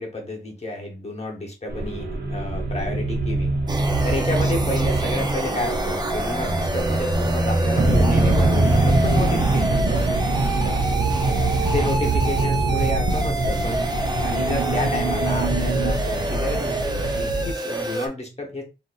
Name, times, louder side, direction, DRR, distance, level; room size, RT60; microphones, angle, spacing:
voice 1, 0.0-3.6 4.0-10.9 11.6-13.9 14.2-18.7, left 2 dB, 35° left, 0 dB, 1.0 m, -31 dB
sound 1, 1.7-15.9, right 2 dB, 60° right, 1.0 m, -25 dB
sound 2, 3.7-18.1, right 2 dB, 20° right, 0.6 m, -28 dB
sound 3, 7.8-17.5, right 2 dB, 85° right, 0.6 m, -24 dB
3.9 x 2.7 x 2.4 m, 0.28 s
wide cardioid pair, 85°, 18 cm